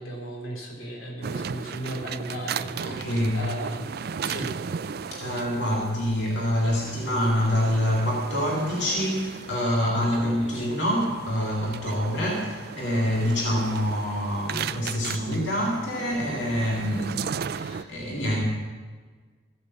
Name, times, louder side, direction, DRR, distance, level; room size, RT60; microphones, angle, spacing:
voice 1, 0.0-4.6 9.9-10.8 13.2-13.6, right 1 dB, 85° left, -1 dB, 3.3 m, -37 dB
sound 1, 1.2-17.8, right 7 dB, 50° right, 0.3 m, -36 dB
voice 2, 2.8-3.4 5.1-18.4, equal, 60° left, -3 dB, 2.2 m, -26 dB
14.5 x 8.5 x 7.2 m, 1.5 s
head